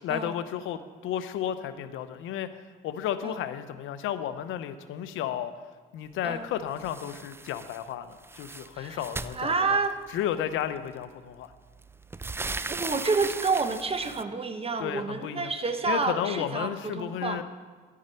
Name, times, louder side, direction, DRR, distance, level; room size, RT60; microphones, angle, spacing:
voice 1, 0.0-2.5 2.8-5.5 5.9-9.8 10.1-11.5 14.8-15.5 15.8-17.4, left 10 dB, 90° left, 12 dB, 0.7 m, -33 dB
sound 1, 6.8-7.8 8.1-10.1 11.0-11.1 11.5-14.2, right 3 dB, 10° right, 0.3 m, -37 dB
voice 2, 9.3-10.0 12.7-17.4, right 4 dB, 30° right, 8 dB, 1.1 m, -29 dB
11.5 x 8.5 x 5.6 m, 1.5 s
cardioid pair, 90°, 20 cm